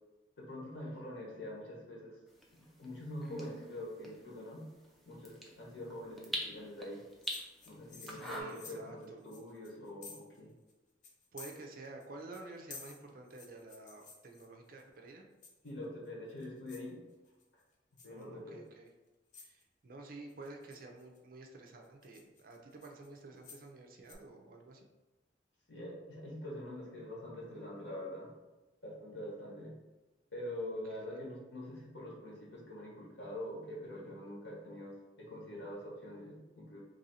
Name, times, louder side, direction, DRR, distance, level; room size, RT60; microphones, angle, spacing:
voice 1, 0.4-2.2 2.5-4.7 5.0-7.0 7.6-10.5 15.6-17.0 18.0-18.6 25.7-28.3 28.8-29.7 30.3-36.8, left 1 dB, 75° left, -4 dB, 1.4 m, -45 dB
sound 1, 2.3-8.4, equal, ahead, 0.5 m, -46 dB
sound 2, 7.2-10.4 10.7-10.8 11.0-12.1 12.3-14.8 15.4-15.9 16.3-16.9 17.3-17.6 18.0-18.2 18.9-19.0 19.3-19.6 20.3-21.2 21.7-23.7 24.1-24.2, left 4 dB, 45° left, 0.6 m, -53 dB
voice 2, 8.0-9.2 11.3-15.3 18.1-18.9 19.4-24.9 30.9-31.2, right 2 dB, 50° right, 2 dB, 0.5 m, -51 dB
3.0 x 2.6 x 4.1 m, 1.1 s
head